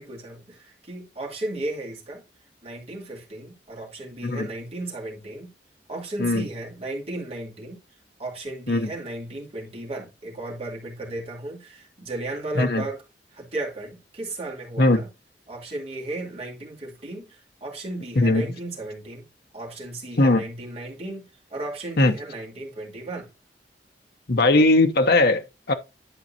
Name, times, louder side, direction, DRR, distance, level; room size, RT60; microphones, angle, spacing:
voice 1, 0.0-2.2 2.6-5.5 5.9-7.8 8.2-13.0 13.3-15.1 15.5-19.2 19.5-23.3, right 2 dB, 35° right, 3.3 m, -35 dB
voice 2, 24.3-25.7, left 2 dB, 60° left, 0.9 m, -19 dB
11.5 x 5.2 x 2.8 m
head